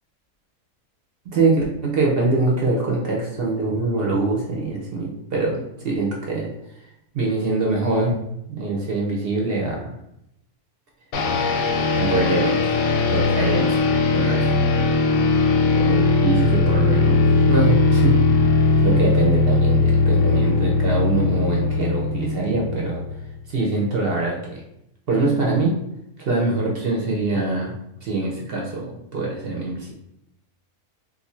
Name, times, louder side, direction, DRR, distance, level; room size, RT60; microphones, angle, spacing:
voice 1, 1.3-6.5 7.1-8.1 8.6-10.0 11.9-12.6 13.1-13.8 14.1-14.5 15.9-18.2 18.8-23.0 23.5-24.6 25.1-25.8 26.2-27.7 28.0-29.9, right 3 dB, 55° right, -2 dB, 0.7 m, -23 dB
sound 1, 11.1-23.3, left 3 dB, 85° left, 1.1 m, -19 dB
2.6 x 2.4 x 4.1 m, 0.82 s
omnidirectional pair, 1.5 m